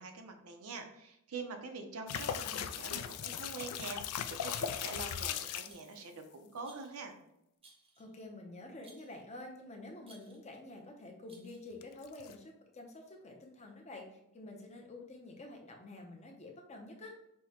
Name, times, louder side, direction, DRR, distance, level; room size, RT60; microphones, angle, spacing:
voice 1, 0.0-7.2, right 4 dB, 75° right, 5 dB, 0.6 m, -45 dB
sound 1, 2.1-5.8 11.8-12.3, left 9 dB, 80° left, 0.3 m, -38 dB
Rattle, 4.7-5.2 5.6-6.0 6.6-7.0 7.6-8.2 8.8-9.2 10.0-10.5 11.3-11.8, right 3 dB, 25° right, 0.8 m, -61 dB
voice 2, 8.0-17.1, left 2 dB, 30° left, 2 dB, 0.7 m, -49 dB
6.1 x 2.2 x 2.8 m, 0.83 s
head